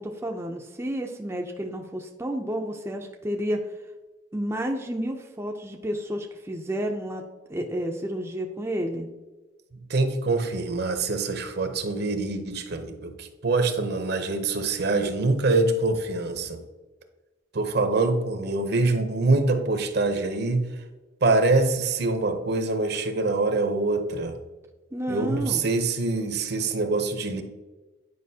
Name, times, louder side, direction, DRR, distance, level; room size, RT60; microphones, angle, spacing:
voice 1, 0.0-3.6 4.3-7.2 7.5-9.1 24.9-25.7, equal, 15° right, 1 dB, 0.4 m, -31 dB
voice 2, 9.9-16.6 17.5-20.7 21.2-24.3 25.1-27.4, right 3 dB, 55° right, 7 dB, 0.7 m, -24 dB
9.5 x 5.0 x 2.7 m, 1.2 s
head